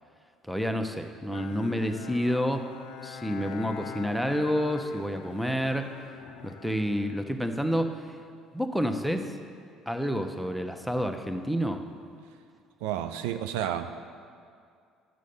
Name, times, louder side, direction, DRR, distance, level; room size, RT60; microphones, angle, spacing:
voice 1, 0.4-2.6 3.0-5.9 6.4-8.0 8.5-9.3 9.9-11.8, equal, ahead, 6 dB, 0.8 m, -29 dB
Bowed string instrument, 1.3-8.0, left 9 dB, 70° left, 0.5 m, -45 dB
voice 2, 12.8-13.9, right 10 dB, 70° right, 9 dB, 0.4 m, -31 dB
7.7 x 6.3 x 7.1 m, 2.2 s
hypercardioid pair, 55°, 0 cm